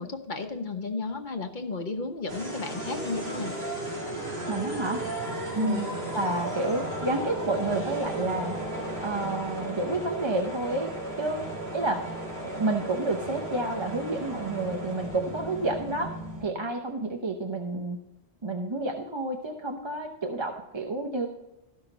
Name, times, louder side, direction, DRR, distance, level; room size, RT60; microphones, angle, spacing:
voice 1, 0.0-3.6 5.6-5.8, left 3 dB, 45° left, 5 dB, 1.2 m, -33 dB
sound 1, 2.3-16.5, right 1 dB, 65° right, 2.4 m, -35 dB
voice 2, 4.5-5.0 5.5-5.9 6.1-8.5 9.0-10.9 11.2-11.4 11.7-12.0 12.4-16.1 16.4-18.0 18.4-21.3, right 2 dB, 30° right, 3 dB, 0.8 m, -29 dB
13.5 x 5.9 x 3.9 m, 0.92 s
omnidirectional pair, 1.1 m